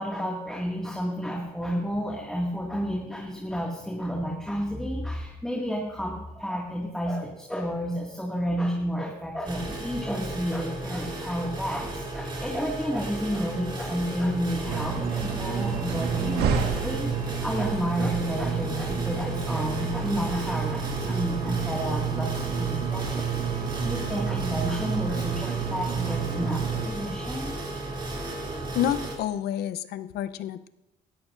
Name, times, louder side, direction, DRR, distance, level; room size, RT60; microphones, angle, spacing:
voice 1, 0.0-27.6, equal, 5° left, -2 dB, 1.9 m, -31 dB
sound 1, 9.5-29.2, right 2 dB, 30° right, 2.8 m, -34 dB
sound 2, 14.7-26.8, right 7 dB, 75° right, 1.5 m, -30 dB
voice 2, 28.7-30.7, left 10 dB, 70° left, 14 dB, 0.7 m, -29 dB
18.5 x 14.0 x 2.5 m, 0.95 s
cardioid pair, 110°, 17 cm